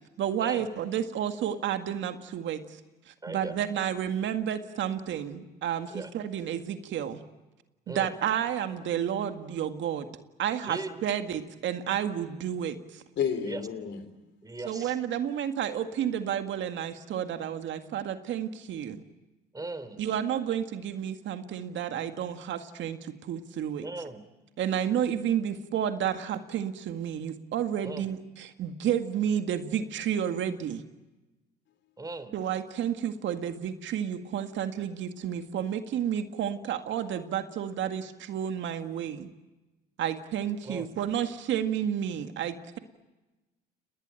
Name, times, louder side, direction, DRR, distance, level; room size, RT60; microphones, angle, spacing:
voice 1, 0.2-2.6 3.1-7.2 7.9-10.1 10.4-13.0 14.7-19.0 20.0-23.9 24.6-30.8 32.3-39.3 40.0-42.8, right 9 dB, 65° right, 1.9 m, -31 dB
voice 2, 3.2-3.6 5.9-6.1 7.9-8.1 10.6-11.0 13.4-13.6 14.4-15.0 19.5-20.0 23.8-24.2 27.8-28.1 32.0-32.4 40.6-40.9, right 2 dB, 15° right, 3.2 m, -38 dB
voice 3, 13.2-14.4 31.7-31.8, left 7 dB, 60° left, 3.4 m, -32 dB
29.5 x 20.0 x 9.0 m
supercardioid pair, 70°, 21 cm